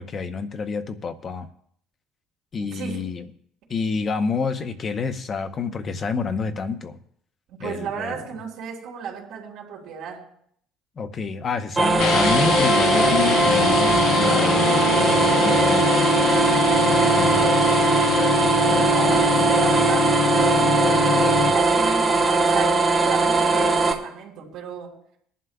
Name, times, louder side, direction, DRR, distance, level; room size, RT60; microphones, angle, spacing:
voice 1, 0.0-1.5 2.5-3.2 3.7-7.0 7.6-8.3 11.0-16.5 17.1-17.7, left 5 dB, 25° left, 7 dB, 0.7 m, -28 dB
voice 2, 2.6-3.0 7.5-10.3 18.7-25.0, right 7 dB, 55° right, -4 dB, 3.6 m, -34 dB
sound 1, 11.8-23.9, right 3 dB, 15° right, 1.0 m, -20 dB
sound 2, 12.0-21.5, left 4 dB, 65° left, 0.9 m, -24 dB
20.5 x 11.0 x 2.3 m, 0.64 s
cardioid pair, 180°, 0 cm